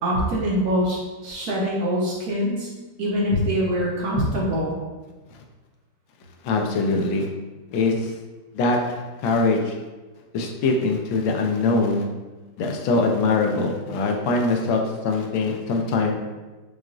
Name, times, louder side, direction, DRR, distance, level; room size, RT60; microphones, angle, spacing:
voice 1, 0.0-2.7 3.0-4.8, equal, 65° right, -4 dB, 1.1 m, -24 dB
voice 2, 6.4-7.3 7.7-8.2 8.5-9.8 10.3-12.1 12.6-16.1, left 3 dB, 90° left, 2 dB, 1.4 m, -23 dB
5.9 x 2.3 x 2.5 m, 1.2 s
omnidirectional pair, 2.1 m